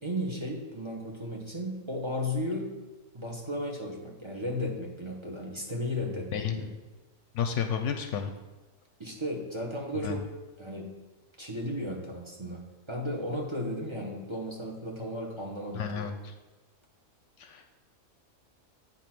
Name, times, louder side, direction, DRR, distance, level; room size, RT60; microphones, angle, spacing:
voice 1, 0.0-2.7 3.1-6.7 9.0-10.2 10.6-10.9 11.4-12.6 12.9-16.1, left 1 dB, 25° right, -1 dB, 1.0 m, -34 dB
voice 2, 6.3-6.7 7.3-8.3 10.0-10.2 15.7-16.3 17.4-17.6, left 7 dB, 70° left, 7 dB, 0.9 m, -32 dB
8.3 x 4.0 x 5.9 m, 1.2 s
omnidirectional pair, 1.4 m